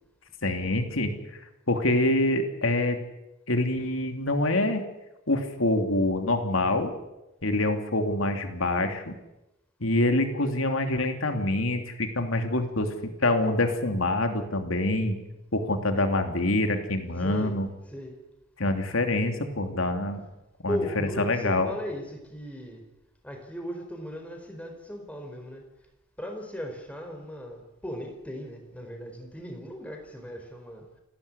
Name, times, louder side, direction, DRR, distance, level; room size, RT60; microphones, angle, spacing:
voice 1, 0.4-1.1 1.7-3.0 3.5-4.8 5.3-6.9 7.4-9.2 9.8-15.2 15.5-17.7 18.6-20.2 20.6-21.7, left 2 dB, 80° left, 6 dB, 2.9 m, -26 dB
voice 2, 17.2-17.5 17.9-18.2 20.7-22.8 23.2-25.6 26.2-30.9, equal, 5° left, 4 dB, 4.4 m, -37 dB
29.0 x 12.5 x 9.9 m, 0.95 s
head